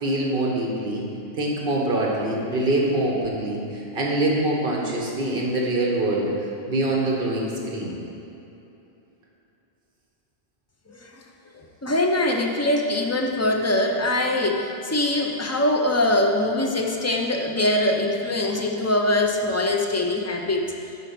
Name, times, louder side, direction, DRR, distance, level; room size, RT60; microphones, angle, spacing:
voice 1, 0.0-1.0 1.4-6.3 6.6-7.9, right 1 dB, 55° right, -2 dB, 1.4 m, -24 dB
voice 2, 11.8-20.7, left 1 dB, 20° left, 1 dB, 0.4 m, -23 dB
9.0 x 3.9 x 6.0 m, 3.0 s
omnidirectional pair, 1.1 m